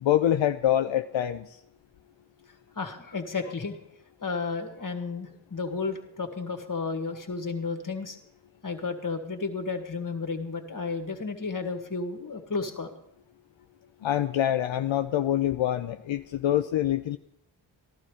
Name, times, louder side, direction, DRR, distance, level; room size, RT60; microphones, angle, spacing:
voice 1, 0.0-1.5 14.0-17.2, left 11 dB, 80° left, 8 dB, 0.6 m, -25 dB
voice 2, 2.8-3.8 4.2-8.2 8.6-13.0, left 4 dB, 45° left, 5 dB, 1.9 m, -32 dB
14.5 x 12.0 x 4.9 m, 0.76 s
cardioid pair, 55°, 45 cm